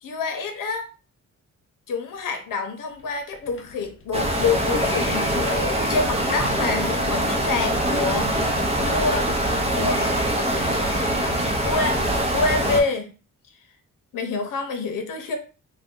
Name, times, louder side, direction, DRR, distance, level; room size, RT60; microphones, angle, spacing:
voice 1, 0.0-0.9 1.9-9.3 9.7-10.1 11.6-12.0 12.3-13.1 14.1-15.4, left 4 dB, 85° left, 5 dB, 0.7 m, -27 dB
sound 1, 2.1-2.2 2.4-2.5 2.9-6.2 7.0-9.5 9.8-12.1, left 4 dB, 45° left, 0.5 m, -41 dB
sound 2, 4.1-12.8, right 1 dB, 20° right, 0.6 m, -23 dB
2.6 x 2.2 x 3.6 m, 0.35 s
wide cardioid pair, 125°, 32 cm